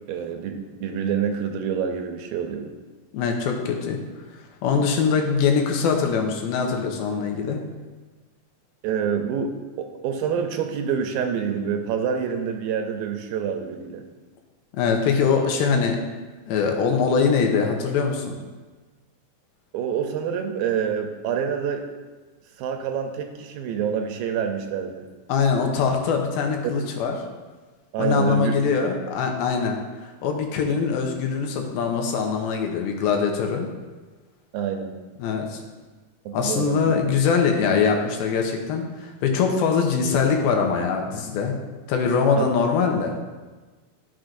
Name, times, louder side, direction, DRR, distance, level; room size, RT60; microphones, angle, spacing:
voice 1, 0.1-2.7 8.8-14.0 19.7-21.9 22.6-25.0 27.9-28.9 34.5-35.0 36.3-37.0 42.4-42.5, right 7 dB, 80° right, 5 dB, 2.4 m, -27 dB
voice 2, 3.1-4.0 4.6-7.6 14.8-16.0 16.5-18.4 25.3-27.2 28.0-33.7 35.2-35.6 36.3-41.6 41.9-43.2, left 5 dB, 90° left, 2 dB, 2.7 m, -22 dB
12.5 x 6.1 x 2.6 m, 1.3 s
omnidirectional pair, 4.3 m